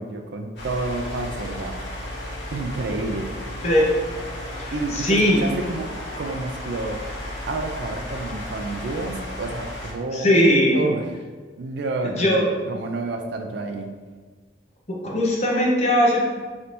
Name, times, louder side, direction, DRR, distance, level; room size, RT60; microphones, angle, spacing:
voice 1, 0.0-1.8 2.5-3.4 4.7-7.0 7.4-10.3 10.7-11.1 11.6-14.0, right 2 dB, 65° right, 5 dB, 0.4 m, -29 dB
sound 1, 0.6-9.9, left 1 dB, 65° left, 1.2 m, -34 dB
voice 2, 4.6-5.4 10.1-10.8 12.0-12.5 14.9-16.3, equal, 35° left, -3 dB, 0.7 m, -19 dB
3.3 x 2.7 x 4.3 m, 1.5 s
head